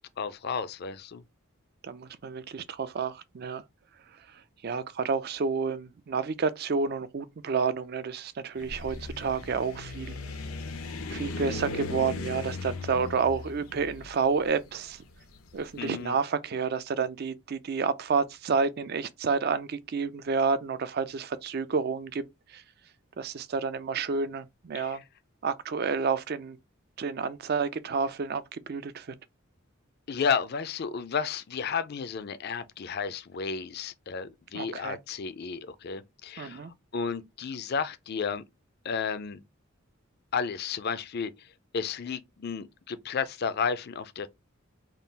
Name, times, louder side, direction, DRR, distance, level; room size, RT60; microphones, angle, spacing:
voice 1, 0.2-1.2 15.8-16.2 24.7-25.0 30.1-38.4 38.8-39.4 40.3-41.5 41.7-44.3, left 6 dB, 50° left, 0.4 m, -32 dB
voice 2, 1.8-3.6 4.6-10.1 11.1-15.0 15.5-22.2 22.5-22.6 23.2-25.0 25.4-26.6 27.0-29.1 34.5-35.0 36.4-36.7, right 5 dB, 45° right, 0.4 m, -30 dB
sound 1, 8.6-15.7, left 3 dB, 90° left, 0.8 m, -37 dB
3.7 x 2.4 x 3.9 m
head